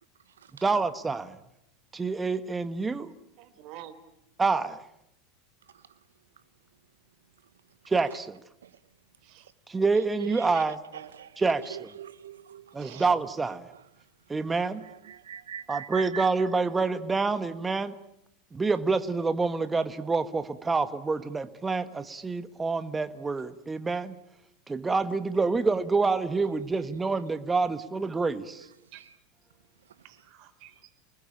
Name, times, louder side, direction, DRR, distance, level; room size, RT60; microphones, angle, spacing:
voice 1, 0.6-1.4 1.9-3.1 4.4-4.8 7.9-8.4 9.7-10.8 11.4-11.9 12.7-13.7 14.3-14.8 15.7-17.9 18.5-24.1 24.7-28.7, right 4 dB, 15° right, 11 dB, 1.5 m, -27 dB
voice 2, 3.4-4.0 9.2-9.5 10.9-11.1 12.8-13.1 28.9-29.0 30.0-30.9, right 12 dB, 55° right, 12 dB, 3.9 m, -49 dB
voice 3, 10.2-11.4 11.7-13.0 13.7-13.8 14.8-16.3 26.8-26.9 28.6-28.7, right 8 dB, 85° right, 14 dB, 1.0 m, -42 dB
29.5 x 20.5 x 8.7 m, 0.80 s
hypercardioid pair, 90°, 0 cm